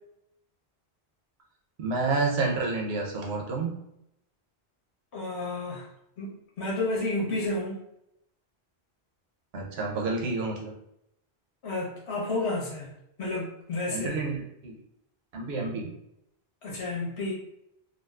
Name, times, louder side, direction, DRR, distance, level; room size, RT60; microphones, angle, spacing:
voice 1, 1.8-3.7 9.5-10.7 13.9-14.7 15.3-15.9, right 3 dB, 80° right, 0 dB, 1.0 m, -29 dB
voice 2, 5.1-5.9 6.2-7.8 11.6-12.9 13.2-14.2 16.6-17.3, left 2 dB, 85° left, -4 dB, 1.4 m, -31 dB
3.8 x 2.3 x 2.3 m, 0.80 s
omnidirectional pair, 1.1 m